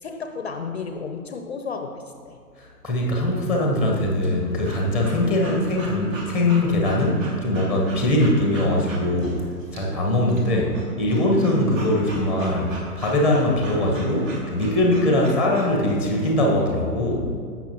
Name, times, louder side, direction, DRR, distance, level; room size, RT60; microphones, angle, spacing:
voice 1, 0.0-2.4, left 5 dB, 45° left, 6 dB, 0.6 m, -33 dB
voice 2, 2.6-9.5 9.7-17.3, left 1 dB, ahead, 0 dB, 0.8 m, -21 dB
Breathing / Dog, 4.2-16.3, right 1 dB, 50° right, 1.9 m, -40 dB
15.5 x 5.9 x 2.9 m, 2.2 s
figure-of-eight pair, 125°, 48 cm